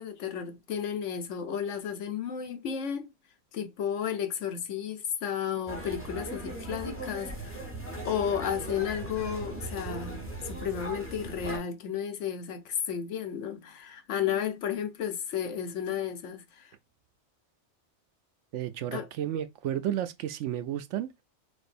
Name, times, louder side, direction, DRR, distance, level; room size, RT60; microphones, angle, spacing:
voice 1, 0.0-3.1 3.5-7.6 8.0-16.7 18.9-19.1, left 8 dB, 90° left, 1.2 m, -33 dB
sound 1, 5.7-11.6, right 1 dB, 10° left, 1.3 m, -38 dB
voice 2, 18.5-21.1, right 11 dB, 90° right, 0.9 m, -32 dB
6.2 x 2.6 x 2.5 m
omnidirectional pair, 1.2 m